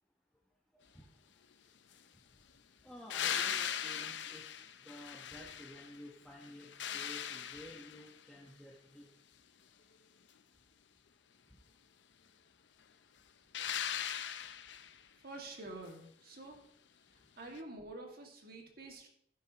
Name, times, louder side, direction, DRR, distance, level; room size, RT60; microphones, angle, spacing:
voice 1, 2.8-4.5 4.8-9.1, equal, 5° left, -2 dB, 1.2 m, -52 dB
sound 1, 3.1-6.0 6.4-8.2 13.5-15.0 17.6-17.7, left 9 dB, 75° left, 0.6 m, -39 dB
voice 2, 15.2-16.6 17.4-19.1, right 2 dB, 55° right, 2 dB, 2.1 m, -48 dB
12.0 x 10.5 x 3.0 m, 0.67 s
head